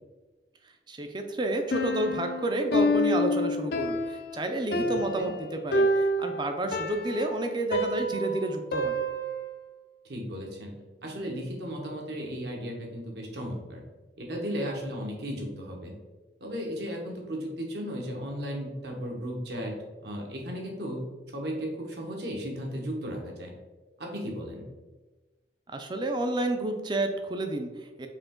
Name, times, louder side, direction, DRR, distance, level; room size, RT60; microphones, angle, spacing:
voice 1, 0.9-9.0 25.7-28.1, right 2 dB, 25° right, 6 dB, 0.4 m, -30 dB
Piano, 1.7-9.6, left 1 dB, 55° left, 0.5 m, -28 dB
voice 2, 10.0-10.7 11.0-13.8 14.2-15.9 16.4-19.7 20.0-21.0 21.3-23.5 24.0-24.7, equal, 65° right, 0 dB, 1.0 m, -35 dB
4.9 x 2.9 x 3.7 m, 1.2 s
head